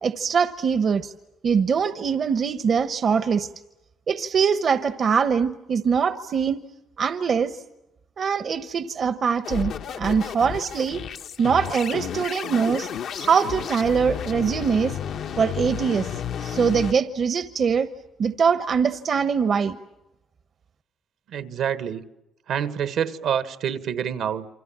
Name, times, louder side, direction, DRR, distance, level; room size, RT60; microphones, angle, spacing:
voice 1, 0.0-1.1 1.4-3.5 4.1-6.6 7.0-7.6 8.2-11.0 11.4-12.9 13.2-15.0 15.4-17.9 18.2-19.8, right 6 dB, 55° right, 1.0 m, -23 dB
sound 1, 9.4-16.9, left 8 dB, 70° left, 1.1 m, -32 dB
voice 2, 21.3-22.0 22.5-24.5, right 8 dB, 80° right, 1.6 m, -27 dB
28.5 x 25.0 x 7.5 m
cardioid pair, 90°, 0 cm